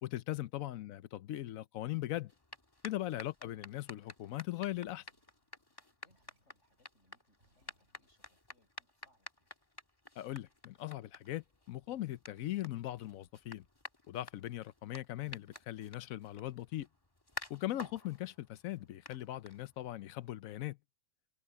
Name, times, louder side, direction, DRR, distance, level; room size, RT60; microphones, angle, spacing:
voice 1, 0.0-2.3 2.8-5.0 10.2-13.6 14.1-16.9 17.5-20.8, left 14 dB, 85° left, 1.1 m, -40 dB
sound 1, 2.2-20.0, left 2 dB, 15° left, 1.7 m, -52 dB
sound 2, 4.8-8.3, right 1 dB, 55° right, 5.8 m, -76 dB
voice 2, 6.0-9.6, left 1 dB, 60° left, 6.7 m, -74 dB
omnidirectional pair, 1.4 m